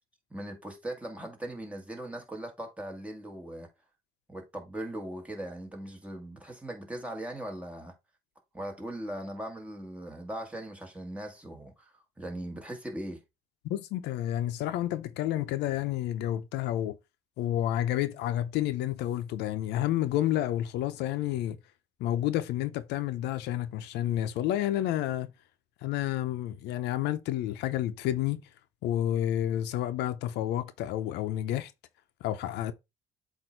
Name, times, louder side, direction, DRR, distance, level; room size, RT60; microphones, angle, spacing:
voice 1, 0.3-3.7 4.3-7.9 8.5-13.2, right 1 dB, 10° right, 1.9 m, -39 dB
voice 2, 13.6-17.0 17.4-21.6 22.0-25.3 25.8-28.4 28.8-31.7 32.2-32.7, left 12 dB, 85° left, 0.6 m, -30 dB
7.8 x 2.7 x 4.5 m
cardioid pair, 110°, 17 cm